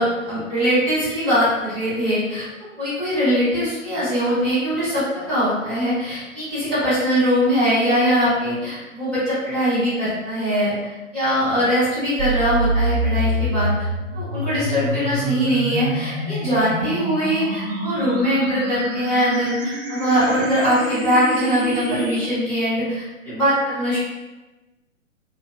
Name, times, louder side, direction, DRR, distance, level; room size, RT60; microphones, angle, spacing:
voice 1, 0.0-2.5 2.8-10.7 11.1-13.7 14.1-24.0, equal, 5° left, -15 dB, 0.4 m, -21 dB
sound 1, 12.2-22.2, right 1 dB, 45° right, 0.6 m, -26 dB
2.6 x 2.2 x 2.6 m, 1.1 s
figure-of-eight pair, 125°, 40 cm